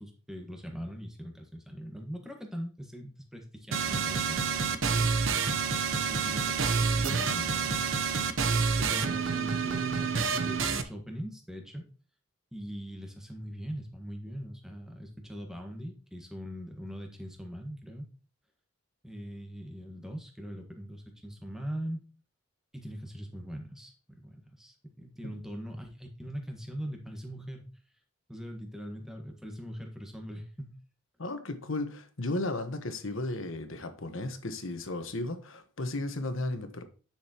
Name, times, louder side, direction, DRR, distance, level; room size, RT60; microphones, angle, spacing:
voice 1, 0.0-5.0 5.9-7.9 8.8-11.9 12.5-18.1 19.0-22.0 22.7-27.6 28.3-30.8, equal, ahead, 1.4 m, -41 dB
sound 1, 3.7-10.8, right 5 dB, 70° right, 0.8 m, -28 dB
voice 2, 31.2-36.8, left 2 dB, 75° left, 1.2 m, -34 dB
9.9 x 6.5 x 3.0 m
head